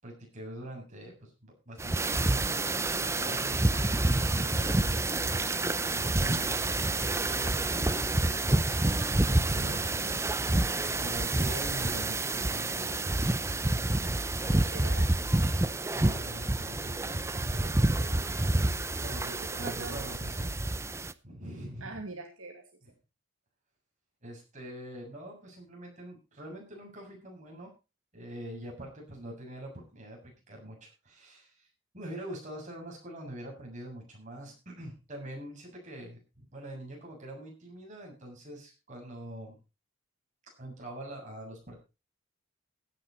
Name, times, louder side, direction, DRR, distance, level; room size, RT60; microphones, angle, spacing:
voice 1, 0.0-2.5 2.8-6.7 7.2-10.2 10.6-13.0 15.3-15.4 15.8-18.4 19.0-20.6 21.2-21.9 24.2-27.7 28.1-31.7 31.9-39.6 40.6-41.8, right 1 dB, 35° right, 0 dB, 7.3 m, -44 dB
sound 1, 1.8-21.1, right 2 dB, 15° right, 0.6 m, -28 dB
voice 2, 14.4-15.1 17.9-18.7 19.2-20.1 21.8-22.8, right 3 dB, 80° right, 3 dB, 2.5 m, -44 dB
16.0 x 10.0 x 4.3 m, 0.30 s
head